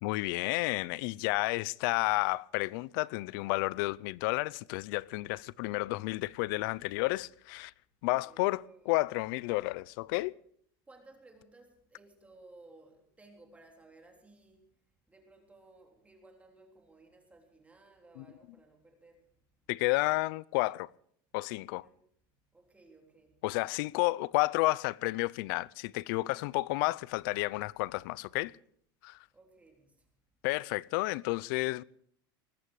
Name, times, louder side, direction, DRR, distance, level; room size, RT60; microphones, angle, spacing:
voice 1, 0.0-7.7 8.0-10.3 18.2-18.3 19.7-20.9 21.3-21.9 23.4-28.6 29.0-29.2 30.4-31.8, left 22 dB, 70° left, 0.6 m, -31 dB
voice 2, 5.0-5.5 8.2-9.0 10.9-14.7 15.1-19.4 21.6-22.0 22.5-23.4 29.3-30.1, right 2 dB, 10° right, 3.4 m, -59 dB
20.0 x 14.5 x 4.9 m
supercardioid pair, 130°, 11 cm